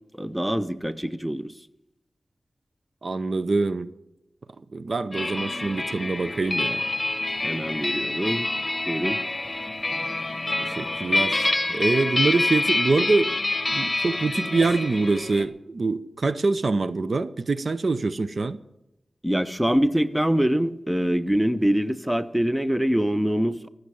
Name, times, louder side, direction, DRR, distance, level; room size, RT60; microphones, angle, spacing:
voice 1, 0.2-1.5 7.4-8.5 8.9-9.2 19.2-23.7, equal, 5° right, 0.8 m, -24 dB
voice 2, 3.0-3.9 4.7-6.8 10.6-13.4 13.7-18.6, right 3 dB, 65° right, 0.6 m, -25 dB
sound 1, 5.1-15.4, left 2 dB, 30° left, 1.3 m, -27 dB
15.0 x 6.5 x 9.8 m
cardioid pair, 60°, 0 cm